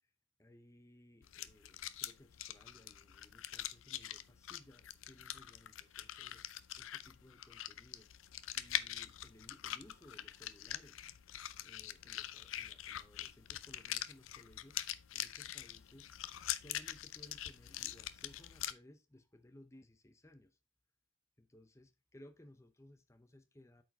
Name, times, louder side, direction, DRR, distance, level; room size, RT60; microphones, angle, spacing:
voice 1, 0.4-6.4 6.8-8.1 8.5-11.0 11.6-14.8 15.1-16.1 16.5-20.6 21.4-23.8, left 1 dB, 15° left, 0.7 m, -61 dB
sound 1, 1.2-18.7, left 12 dB, 75° left, 0.5 m, -44 dB
8.3 x 4.7 x 3.6 m
head